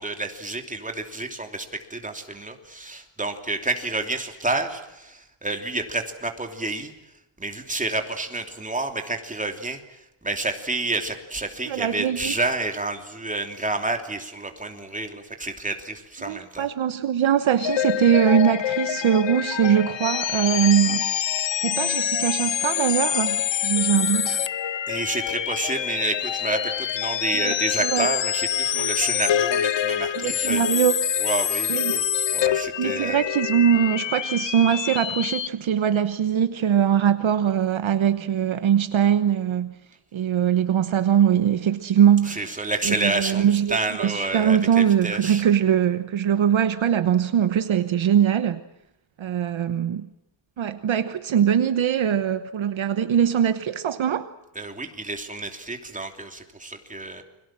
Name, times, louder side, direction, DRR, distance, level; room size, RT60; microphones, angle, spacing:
voice 1, 0.0-6.9 7.4-16.7 24.9-30.6 31.2-33.2 42.3-45.4 54.5-57.2, right 2 dB, 15° right, 3.1 m, -29 dB
voice 2, 11.7-12.3 16.2-21.1 21.6-24.4 27.4-27.5 27.8-28.1 30.1-31.0 31.7-32.0 32.8-39.7 40.1-42.6 42.8-48.6 49.2-50.1 50.6-54.3, right 9 dB, 70° right, 1.1 m, -22 dB
sound 1, 17.6-35.5, left 10 dB, 60° left, 1.0 m, -26 dB
29.5 x 23.0 x 7.5 m
wide cardioid pair, 150°, 49 cm